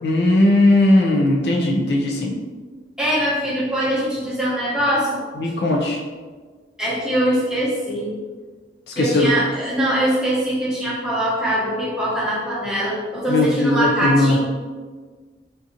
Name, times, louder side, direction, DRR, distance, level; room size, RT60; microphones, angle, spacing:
voice 1, 0.0-2.3 5.4-6.0 8.9-9.3 13.3-14.4, left 1 dB, 65° left, 0 dB, 0.4 m, -18 dB
voice 2, 3.0-5.2 6.8-8.1 8.9-14.4, equal, 5° right, -8 dB, 0.9 m, -22 dB
3.7 x 2.8 x 2.5 m, 1.5 s
head